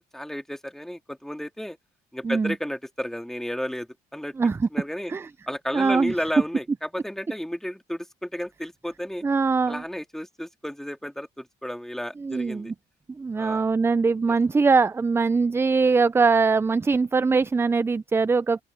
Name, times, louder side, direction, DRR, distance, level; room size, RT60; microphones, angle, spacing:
voice 1, 0.0-1.8 2.1-4.4 4.7-5.1 5.5-9.2 9.7-12.7 13.4-13.6, equal, ahead, 2.3 m, -33 dB
voice 2, 2.2-2.5 4.4-4.7 5.1-5.3 5.7-6.1 9.2-9.8 12.2-12.7 13.1-18.6, right 4 dB, 15° right, 0.4 m, -22 dB
open air
cardioid pair, 110°, 17 cm